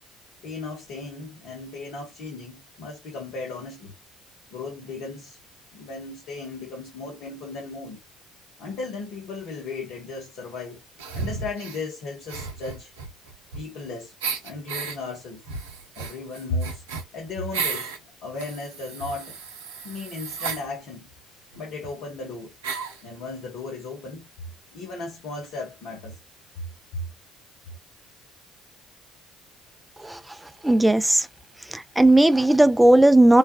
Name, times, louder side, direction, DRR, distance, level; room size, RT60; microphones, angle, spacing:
voice 1, 0.4-3.9 4.5-5.4 5.7-8.0 8.6-10.8 11.1-12.9 13.6-14.1 14.4-15.4 16.0-16.8 17.1-17.9 18.2-19.4 19.8-21.1 21.5-22.5 23.0-24.5 24.7-26.2 26.6-26.7 26.9-27.1, left 3 dB, 60° left, 0.9 m, -35 dB
sound 1, 11.0-11.8 12.2-13.9 14.2-15.0 15.4-18.0 18.4-20.6 21.5-21.6 21.8-21.9 22.6-23.0, right 5 dB, 75° right, 0.6 m, -33 dB
voice 2, 30.6-31.3 31.7-33.4, right 1 dB, 10° right, 0.4 m, -16 dB
3.3 x 2.2 x 2.2 m
figure-of-eight pair, 55°, 0 cm